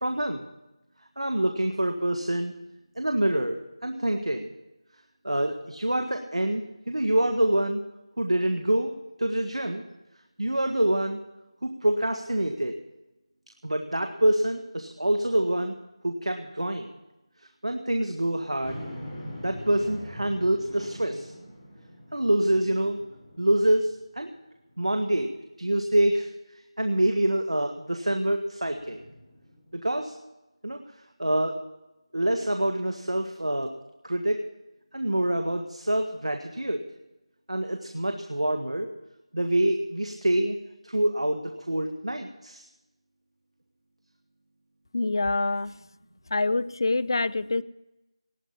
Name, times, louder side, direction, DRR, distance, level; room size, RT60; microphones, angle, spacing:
voice 1, 0.0-0.4 1.2-2.5 3.0-4.5 5.2-7.8 8.2-8.9 9.2-9.8 10.4-11.2 11.6-12.7 13.6-15.7 16.0-16.9 17.6-18.8 19.4-21.3 22.1-23.0 23.4-24.3 24.8-25.3 25.6-26.3 26.8-29.0 29.7-30.1 30.6-30.8 31.2-31.6 32.1-33.7 34.0-34.4 34.9-36.8 37.5-38.9 39.3-40.6 40.8-41.4 41.7-42.7, right 1 dB, 85° right, 5 dB, 1.7 m, -26 dB
sound 1, 18.6-24.2 24.7-24.8 28.6-29.7, equal, 10° left, 4.4 m, -43 dB
voice 2, 44.9-45.7 46.3-47.6, left 3 dB, 45° left, 18 dB, 0.6 m, -25 dB
19.0 x 9.8 x 5.6 m, 0.97 s
figure-of-eight pair, 170°, 3 cm